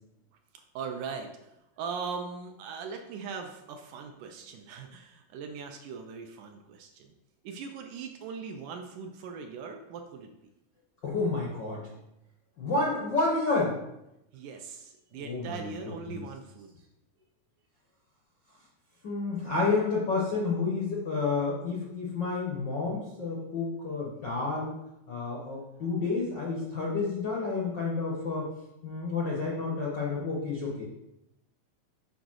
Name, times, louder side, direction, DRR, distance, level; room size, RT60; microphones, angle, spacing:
voice 1, 0.5-7.1 7.4-10.3 14.3-16.7, right 5 dB, 75° right, 4 dB, 2.0 m, -40 dB
voice 2, 11.0-11.9 12.6-13.8 15.2-15.7 16.1-16.2 19.0-24.8 25.1-28.5 28.8-30.8, left 3 dB, 80° left, -3 dB, 1.0 m, -30 dB
7.1 x 3.9 x 6.2 m, 0.87 s
omnidirectional pair, 4.1 m